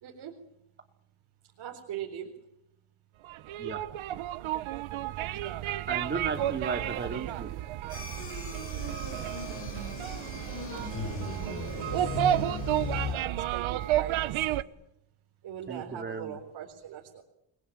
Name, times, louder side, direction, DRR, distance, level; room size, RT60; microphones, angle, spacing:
voice 1, 0.0-0.3 1.6-2.4 11.4-12.1 13.1-14.7 15.4-17.2, right 10 dB, 55° right, 2 dB, 4.3 m, -41 dB
sound 1, 3.2-14.6, right 13 dB, 85° right, 1.3 m, -32 dB
voice 2, 5.9-7.5 15.7-16.4, right 4 dB, 25° right, 6 dB, 2.7 m, -35 dB
sound 2, 7.9-13.1, left 3 dB, 25° left, 5.6 m, -37 dB
29.5 x 21.5 x 8.8 m, 0.81 s
cardioid pair, 175°, 47 cm